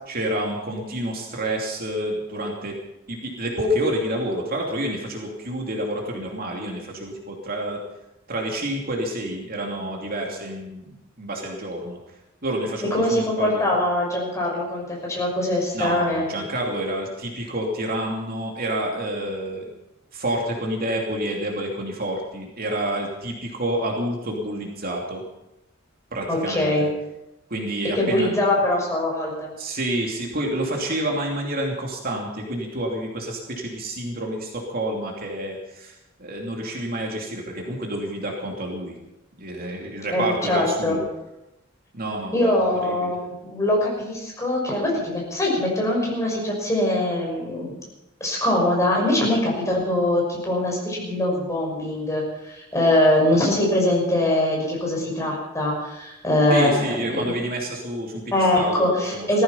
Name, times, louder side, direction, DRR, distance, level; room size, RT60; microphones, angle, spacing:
voice 1, 0.1-2.7 3.1-7.8 8.3-12.0 12.4-13.7 15.7-19.6 20.1-25.2 26.1-26.7 27.5-28.3 29.6-38.9 39.4-41.0 41.9-43.2 56.5-59.4, right 1 dB, 50° right, 0 dB, 2.9 m, -28 dB
voice 2, 12.9-16.2 26.3-26.9 27.9-29.5 40.1-41.0 42.3-47.8 48.2-57.3 58.3-59.4, left 1 dB, 15° left, -2 dB, 6.2 m, -22 dB
17.5 x 14.5 x 5.7 m, 0.92 s
head